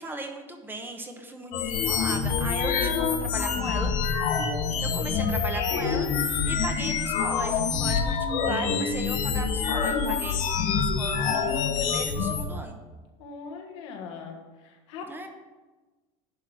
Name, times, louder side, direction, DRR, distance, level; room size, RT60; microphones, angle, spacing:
voice 1, 0.0-3.9 4.8-12.8 15.1-15.3, right 2 dB, 15° right, 4 dB, 1.0 m, -37 dB
sound 1, 1.5-12.4, left 6 dB, 65° left, 1.3 m, -26 dB
voice 2, 4.7-5.0 13.2-15.3, left 5 dB, 85° left, 2 dB, 1.7 m, -41 dB
10.5 x 3.8 x 6.2 m, 1.2 s
supercardioid pair, 115°, 15 cm